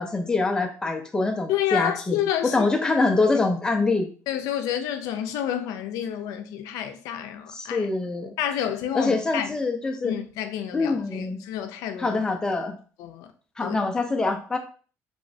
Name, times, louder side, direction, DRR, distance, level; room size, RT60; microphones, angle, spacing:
voice 1, 0.0-4.1 7.5-8.3 8.9-10.2 10.7-11.4 12.0-12.7 13.6-14.6, left 3 dB, 10° left, 0.5 m, -25 dB
voice 2, 1.5-2.6 3.2-3.4 4.3-7.9 8.4-9.5 10.0-12.2 13.0-13.3 13.6-13.8, left 10 dB, 85° left, 0.5 m, -29 dB
3.1 x 3.0 x 2.7 m
cardioid pair, 150°, 6 cm